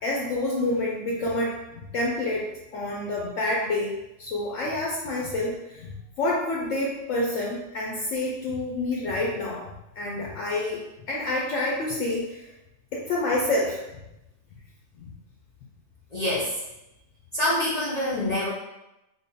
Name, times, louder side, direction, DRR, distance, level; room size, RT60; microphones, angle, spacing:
voice 1, 0.0-2.5 2.7-12.5 12.9-13.8 14.9-15.1, left 2 dB, 70° left, -3 dB, 0.9 m, -28 dB
voice 2, 16.1-16.5 17.3-18.5, left 1 dB, 50° left, -8 dB, 0.5 m, -25 dB
3.6 x 2.0 x 3.7 m, 0.92 s
omnidirectional pair, 1.5 m